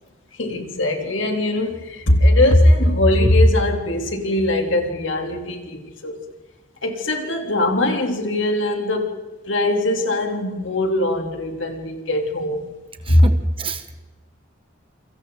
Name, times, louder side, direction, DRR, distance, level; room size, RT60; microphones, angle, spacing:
voice 1, 0.4-6.2 6.8-9.2 9.4-12.7 13.1-13.3, left 1 dB, 80° left, 3.3 m, -20 dB
voice 2, 13.1-13.9, right 3 dB, 30° right, 1.7 m, -30 dB
29.0 x 24.5 x 4.0 m
head